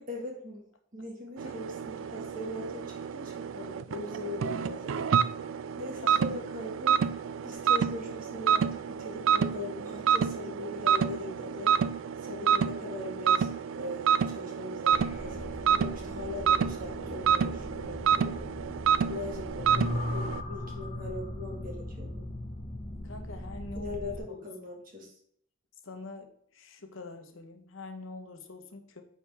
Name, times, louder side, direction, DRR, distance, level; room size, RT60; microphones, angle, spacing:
voice 1, 0.1-5.1 5.8-7.0 7.4-11.8 12.2-18.5 19.1-22.3 23.7-25.1, left 2 dB, 40° right, 0 dB, 1.8 m, -40 dB
sound 1, 1.4-20.4, right 7 dB, 75° right, 0.4 m, -29 dB
voice 2, 6.0-6.4 23.0-23.9 24.3-24.4 25.8-29.0, left 2 dB, 75° left, 7 dB, 1.0 m, -45 dB
sound 2, 14.9-24.2, left 1 dB, 30° left, 1.0 m, -38 dB
9.1 x 4.4 x 3.4 m, 0.66 s
head